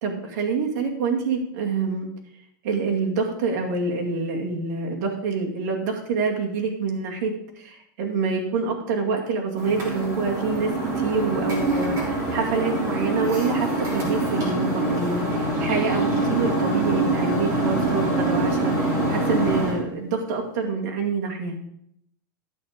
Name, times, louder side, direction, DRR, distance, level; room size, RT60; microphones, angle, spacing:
voice 1, 0.0-2.1 2.6-21.6, right 4 dB, 65° right, 0 dB, 2.2 m, -26 dB
sound 1, 9.6-19.8, right 2 dB, 30° right, 3.1 m, -24 dB
12.5 x 6.4 x 5.1 m, 0.73 s
supercardioid pair, 165°, 11 cm